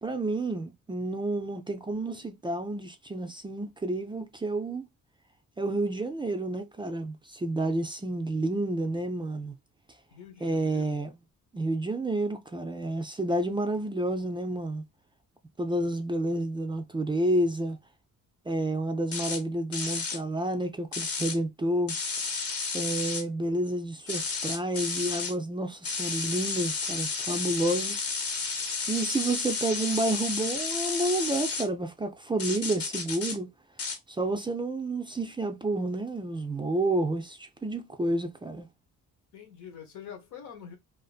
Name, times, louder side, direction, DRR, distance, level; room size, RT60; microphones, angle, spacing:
voice 1, 0.0-4.9 5.6-9.6 10.4-11.2 11.5-14.8 15.6-17.8 18.5-21.9 22.7-28.0 28.9-33.5 34.1-38.7, right 1 dB, 15° right, 0.4 m, -30 dB
voice 2, 10.1-10.9 39.3-40.8, left 7 dB, 80° left, 1.0 m, -45 dB
sound 1, 19.1-19.4 19.7-20.2 20.9-21.4 21.9-23.2 24.1-25.3 25.8-31.7 32.4-33.4 33.8-34.0, left 4 dB, 50° left, 1.0 m, -32 dB
2.6 x 2.5 x 2.3 m
cardioid pair, 110°, 30 cm